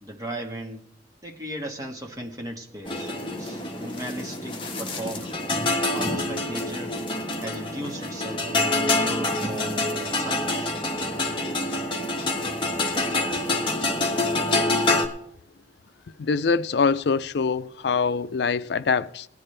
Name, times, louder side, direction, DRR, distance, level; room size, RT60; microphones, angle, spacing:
voice 1, 0.0-0.9 1.2-5.4 5.9-7.0 7.4-10.8 12.0-12.1 12.5-12.6, right 1 dB, 20° right, 1.6 m, -37 dB
sound 1, 2.8-15.1, left 2 dB, 30° left, 1.4 m, -26 dB
voice 2, 16.2-19.3, left 5 dB, 75° left, 0.4 m, -24 dB
19.0 x 10.5 x 3.3 m
head